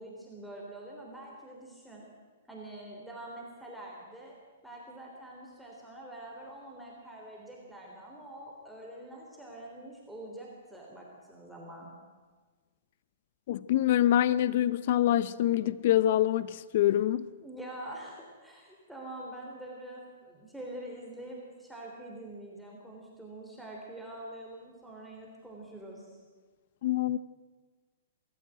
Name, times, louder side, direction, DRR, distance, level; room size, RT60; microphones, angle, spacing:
voice 1, 0.0-2.0 2.5-4.3 4.6-11.9 17.4-26.2, right 1 dB, ahead, 3.5 m, -45 dB
voice 2, 13.5-17.2 26.8-27.2, left 12 dB, 55° left, 0.6 m, -25 dB
22.5 x 14.0 x 9.1 m
hypercardioid pair, 145°, 0 cm